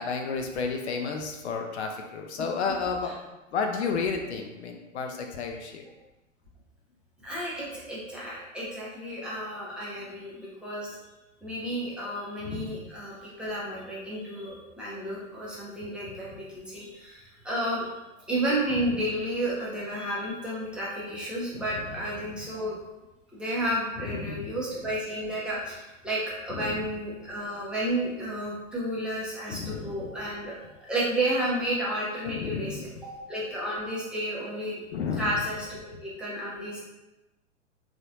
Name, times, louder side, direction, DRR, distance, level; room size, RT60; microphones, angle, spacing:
voice 1, 0.0-3.2 3.5-5.8 12.4-12.9 24.0-24.5 26.5-26.9 29.5-30.0 32.3-32.8 34.9-35.3, left 5 dB, 55° left, 3 dB, 0.5 m, -32 dB
voice 2, 7.2-10.9 11.4-17.9 18.3-22.8 23.3-30.5 30.8-34.8 35.2-36.8, right 1 dB, ahead, -8 dB, 0.7 m, -32 dB
4.0 x 2.5 x 2.6 m, 1.0 s
figure-of-eight pair, 100°, 40 cm